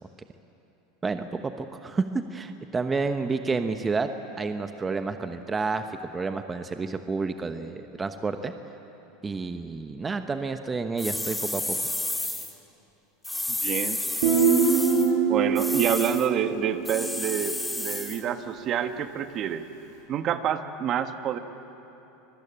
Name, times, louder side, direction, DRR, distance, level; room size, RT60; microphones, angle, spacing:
voice 1, 1.0-2.0 2.3-4.1 4.4-5.9 6.1-8.5 9.2-11.8, right 4 dB, 20° right, 8 dB, 1.1 m, -30 dB
sound 1, 11.0-12.5 13.2-15.1 15.5-16.3 16.8-18.2, left 2 dB, 5° left, 2.2 m, -31 dB
voice 2, 13.5-14.2 15.3-19.6 20.1-21.4, right 9 dB, 45° right, 8 dB, 1.4 m, -28 dB
Guitar, 14.2-17.9, right 6 dB, 80° right, 5.6 m, -24 dB
25.0 x 20.5 x 8.8 m, 3.0 s
hypercardioid pair, 105°, 0 cm